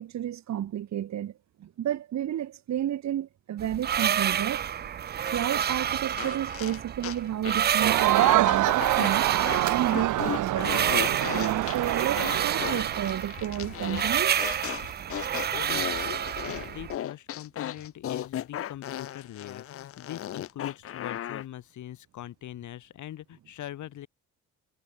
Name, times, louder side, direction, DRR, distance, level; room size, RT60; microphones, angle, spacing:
voice 1, 0.0-1.3 1.6-4.7 5.3-9.3 9.7-10.7 11.3-14.4 16.5-16.7, right 11 dB, 65° right, 2.1 m, -31 dB
sound 1, 3.6-17.0, right 9 dB, 35° right, 0.4 m, -29 dB
sound 2, 5.2-7.2 7.4-7.7 8.2-9.6 9.9-21.4, left 11 dB, 50° left, 0.6 m, -36 dB
Crowd, 7.8-13.1, right 16 dB, 80° right, 1.0 m, -26 dB
voice 2, 15.2-16.1 16.4-24.1, left 12 dB, 75° left, 5.0 m, -42 dB
cardioid pair, 90°, 30 cm